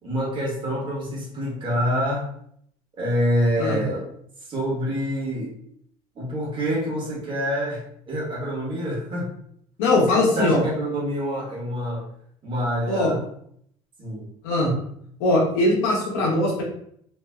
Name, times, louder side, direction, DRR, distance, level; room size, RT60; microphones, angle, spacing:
voice 1, 0.0-2.3 3.0-4.0 4.5-5.5 6.1-9.3 9.9-12.1 12.4-13.2 14.0-14.3, equal, 40° right, -4 dB, 1.2 m, -26 dB
voice 2, 9.8-10.6 12.9-13.1 14.4-14.7 15.2-16.6, left 2 dB, 90° left, -3 dB, 0.9 m, -21 dB
2.7 x 2.4 x 2.2 m, 0.67 s
supercardioid pair, 95°, 13 cm